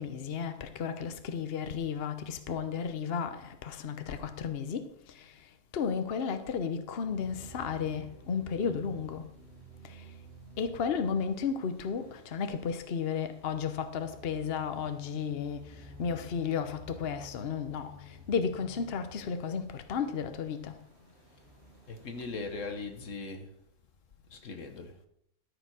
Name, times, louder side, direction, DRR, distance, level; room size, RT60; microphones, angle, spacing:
voice 1, 0.0-5.5 5.7-9.2 9.8-10.1 10.6-20.8, left 6 dB, 55° left, 1.0 m, -33 dB
sound 1, 7.0-23.1, right 1 dB, 60° right, 2.0 m, -53 dB
voice 2, 21.9-23.5 24.3-25.0, left 3 dB, 85° left, 1.7 m, -39 dB
13.0 x 5.2 x 6.2 m
omnidirectional pair, 1.3 m